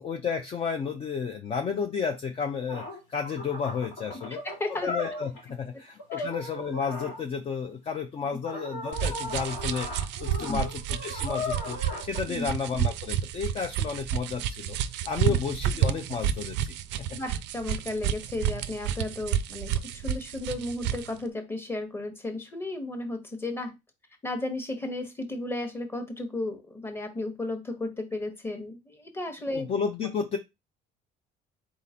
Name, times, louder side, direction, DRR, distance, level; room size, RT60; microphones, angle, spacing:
voice 1, 0.0-4.4 4.8-9.9 10.2-14.8 15.0-17.1 29.5-30.4, left 6 dB, 30° left, 4 dB, 0.5 m, -32 dB
sound 1, 2.4-2.5 2.7-5.5 6.0-7.2 8.4-12.2, left 2 dB, 80° left, 1.8 m, -37 dB
voice 2, 4.4-4.9 6.2-6.3 10.5-10.6 12.3-12.5 15.3-15.4 17.1-23.7 24.2-29.7, left 2 dB, 10° left, 6 dB, 1.1 m, -34 dB
sound 2, 8.9-21.1, right 10 dB, 70° right, 0.5 m, -30 dB
4.0 x 3.7 x 2.8 m, 0.22 s
cardioid pair, 120°, 19 cm